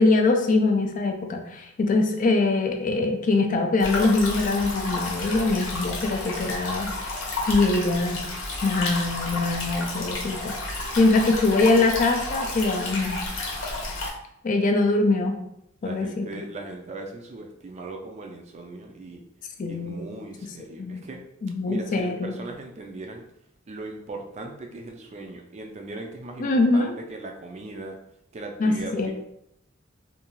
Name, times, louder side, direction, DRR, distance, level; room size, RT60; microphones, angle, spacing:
voice 1, 0.0-7.2 7.5-8.2 8.6-13.3 14.4-15.4 15.8-16.3 19.6-20.0 20.8-21.0 21.4-22.4 26.4-26.9 28.6-29.1, left 3 dB, 40° left, 4 dB, 0.4 m, -23 dB
sound 1, 3.8-14.1, left 2 dB, 70° left, 0.7 m, -31 dB
voice 2, 15.8-19.2 19.7-21.2 21.7-23.2 23.7-28.0 28.3-29.1, right 2 dB, 35° right, 3 dB, 0.4 m, -38 dB
2.5 x 2.3 x 2.9 m, 0.76 s
head